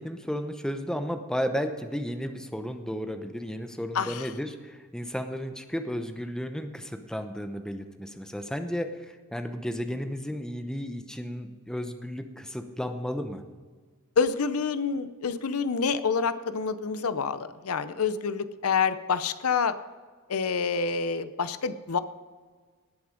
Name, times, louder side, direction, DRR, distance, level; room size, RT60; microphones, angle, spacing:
voice 1, 0.0-13.4, equal, 5° left, 7 dB, 0.8 m, -33 dB
voice 2, 3.9-4.3 14.2-19.8 20.3-22.0, left 5 dB, 80° left, 13 dB, 0.7 m, -27 dB
19.0 x 6.9 x 5.1 m, 1.5 s
head